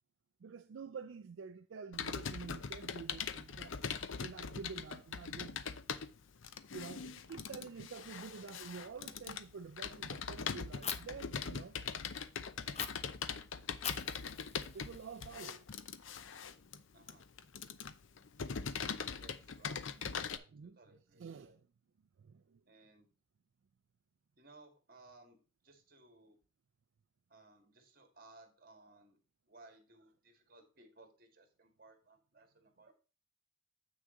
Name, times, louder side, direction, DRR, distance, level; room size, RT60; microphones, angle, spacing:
voice 1, 0.4-3.8 4.2-5.6 6.7-11.8 14.7-15.7 19.2-19.3 19.9-20.2 20.5-21.6 22.2-22.6, right 5 dB, 75° right, 0.4 m, -49 dB
Computer keyboard, 1.9-20.4, left 6 dB, 75° left, 0.6 m, -42 dB
Fire, 10.8-11.0 12.7-12.9 13.8-15.8, left 7 dB, 30° left, 0.6 m, -43 dB
voice 2, 19.2-19.8 20.2-21.6 22.7-23.1 24.4-25.4 25.6-26.4 27.3-29.2 29.5-32.9, right 2 dB, 45° right, 1.9 m, -61 dB
8.2 x 6.3 x 3.8 m
head